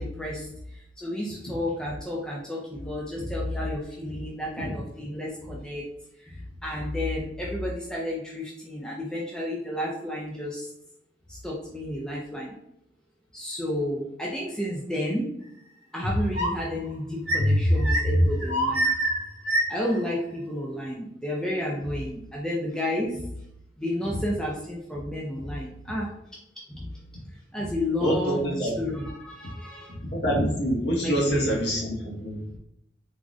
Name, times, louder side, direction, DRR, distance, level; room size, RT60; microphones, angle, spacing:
voice 1, 0.0-5.9 6.2-10.7 11.3-12.6 13.3-15.3 15.9-18.9 19.7-23.3 23.8-26.1 26.6-26.9 27.5-29.9 31.0-31.6 32.5-32.6, left 1 dB, 5° left, -4 dB, 0.3 m, -31 dB
sound 1, 16.0-16.7 17.2-19.9, equal, 60° right, 0.9 m, -23 dB
voice 2, 28.0-28.7 30.1-32.6, equal, 60° left, -2 dB, 0.9 m, -26 dB
3.6 x 2.1 x 2.4 m, 0.77 s
head